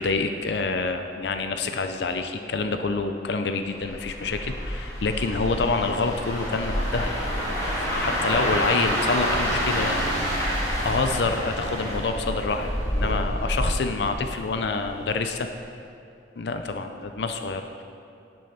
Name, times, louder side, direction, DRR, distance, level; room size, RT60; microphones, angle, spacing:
voice 1, 0.0-10.0 10.8-15.5 16.4-17.8, left 3 dB, 70° left, 7 dB, 0.5 m, -27 dB
sound 1, 3.7-14.8 15.2-15.5, equal, 20° left, 2.6 m, -28 dB
10.5 x 6.3 x 5.7 m, 2.6 s
head